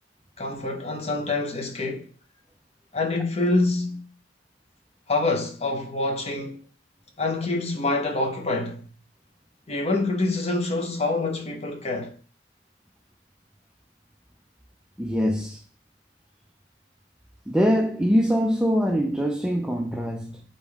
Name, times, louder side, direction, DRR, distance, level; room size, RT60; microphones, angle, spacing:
voice 1, 0.4-2.1 2.9-4.0 5.1-6.6 7.2-8.8 9.7-12.1, left 2 dB, 35° left, 0.8 m, -26 dB
voice 2, 15.0-15.6 17.5-20.4, equal, 5° right, 0.3 m, -23 dB
4.1 x 3.5 x 3.4 m
head